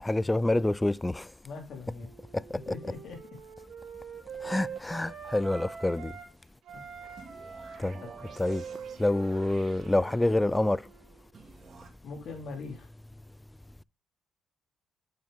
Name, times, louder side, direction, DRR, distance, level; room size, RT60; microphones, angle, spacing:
voice 1, 0.0-1.2 2.7-2.8 4.4-6.1 7.8-8.0 8.4-8.6 9.0-10.8, left 2 dB, 15° left, 0.3 m, -27 dB
voice 2, 1.4-2.1 2.7-3.2 6.7-6.8 12.0-12.9, left 4 dB, 60° left, 3.4 m, -41 dB
Wind instrument woodwind instrument, 1.9-6.3 6.6-11.2, right 6 dB, 70° right, 3.0 m, -44 dB
sound 1, 7.2-10.6 11.3-11.9, right 4 dB, 50° right, 2.1 m, -51 dB
8.8 x 5.4 x 3.5 m
cardioid pair, 90°, 0 cm